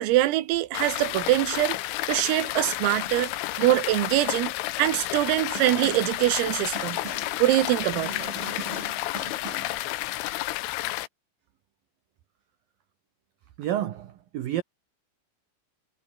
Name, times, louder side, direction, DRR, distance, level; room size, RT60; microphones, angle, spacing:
voice 1, 0.0-1.8 2.1-3.3 3.6-4.5 4.8-7.0 7.4-8.3, right 15 dB, 90° right, 4.1 m, -23 dB
sound 1, 0.7-11.1, left 18 dB, 80° left, 3.4 m, -31 dB
Snare drum, 5.6-6.2 6.8-7.4 8.0-9.8, right 4 dB, 45° right, 8.5 m, -40 dB
voice 2, 13.6-14.6, right 12 dB, 65° right, 2.4 m, -29 dB
omnidirectional pair, 5.9 m